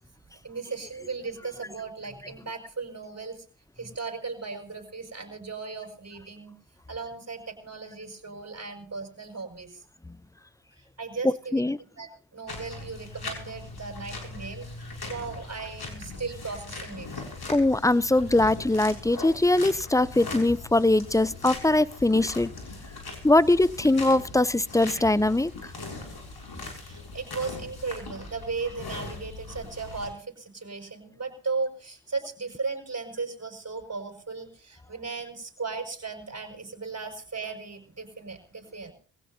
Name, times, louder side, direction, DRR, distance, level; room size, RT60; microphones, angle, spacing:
voice 1, 0.4-3.4 3.8-6.5 6.9-9.8 10.8-11.6 12.0-17.1 26.7-38.9, right 4 dB, 35° right, 4 dB, 5.8 m, -36 dB
sound 1, 12.5-30.1, left 3 dB, 55° left, 6.7 m, -40 dB
voice 2, 17.5-22.5 23.2-25.5, left 2 dB, 5° left, 19 dB, 0.6 m, -22 dB
23.5 x 16.5 x 2.8 m, 0.40 s
cardioid pair, 55°, 44 cm